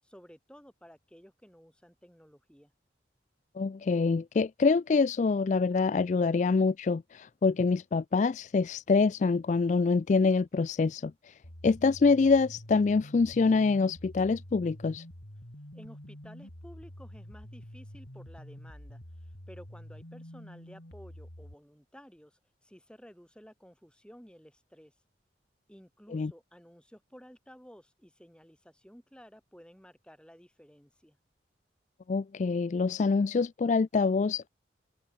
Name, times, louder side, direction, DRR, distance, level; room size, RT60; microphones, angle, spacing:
voice 1, 0.0-2.7 15.7-24.9 25.7-31.2, equal, 5° left, 7.8 m, -54 dB
voice 2, 3.6-15.0 26.1-26.3 32.1-34.5, left 4 dB, 40° left, 0.3 m, -26 dB
sound 1, 11.4-21.5, equal, 80° left, 4.4 m, -47 dB
head